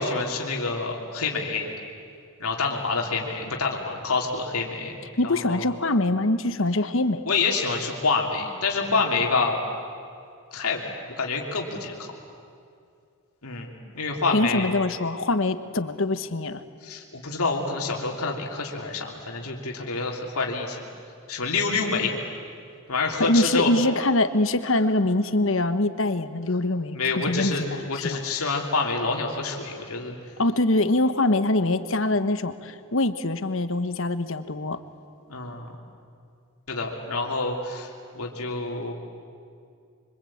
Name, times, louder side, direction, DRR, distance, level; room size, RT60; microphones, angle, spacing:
voice 1, 0.0-1.7 2.4-5.6 7.3-9.6 10.5-10.8 11.1-12.1 13.4-14.7 16.8-20.8 21.3-22.1 22.9-23.7 26.9-30.2 35.3-35.7 36.7-38.9, left 4 dB, 90° left, 0 dB, 3.1 m, -27 dB
voice 2, 5.2-7.2 14.3-16.6 23.2-27.0 27.3-28.2 30.4-34.8, left 2 dB, 65° left, 11 dB, 1.2 m, -24 dB
25.5 x 25.0 x 8.7 m, 2.4 s
head